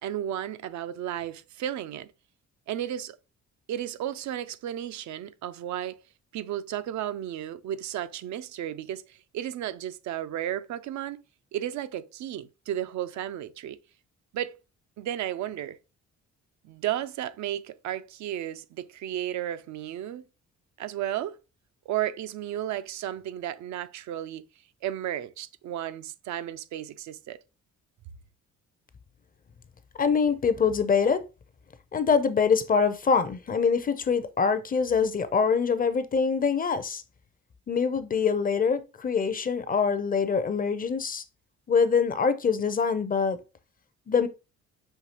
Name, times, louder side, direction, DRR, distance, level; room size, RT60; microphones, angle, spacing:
voice 1, 0.0-2.1 2.7-3.2 3.7-6.0 6.3-11.2 11.5-13.8 14.3-14.6 15.0-15.8 16.6-20.2 20.8-21.4 21.9-24.5 24.8-27.4, right 11 dB, 70° right, 0.4 m, -33 dB
voice 2, 30.0-31.2 31.9-37.0 37.7-41.2 41.7-43.4 44.1-44.3, left 5 dB, 30° left, 0.5 m, -24 dB
5.7 x 2.7 x 2.9 m
cardioid pair, 90°, 30 cm